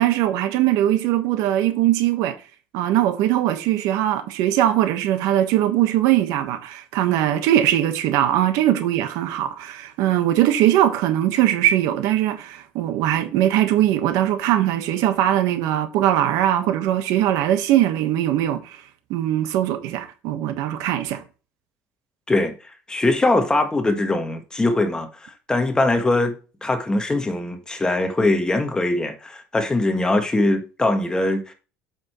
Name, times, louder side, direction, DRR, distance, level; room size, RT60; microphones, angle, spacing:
voice 1, 0.0-2.3 2.7-18.8 19.1-21.2, right 12 dB, 75° right, 1.3 m, -20 dB
voice 2, 22.9-31.5, left 2 dB, 15° left, 1.4 m, -22 dB
8.3 x 6.5 x 3.1 m
cardioid pair, 120°, 6 cm